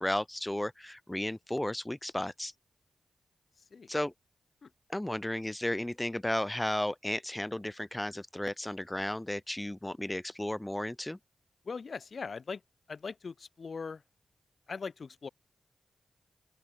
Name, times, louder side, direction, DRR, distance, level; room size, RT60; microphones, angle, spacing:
voice 1, 0.0-2.5 3.9-4.1 4.9-11.2, left 1 dB, 15° left, 4.9 m, -34 dB
voice 2, 3.6-3.9 4.6-4.7 11.6-12.6 12.9-14.0 14.7-15.3, left 5 dB, 60° left, 4.5 m, -40 dB
open air
cardioid pair, 55°, 0 cm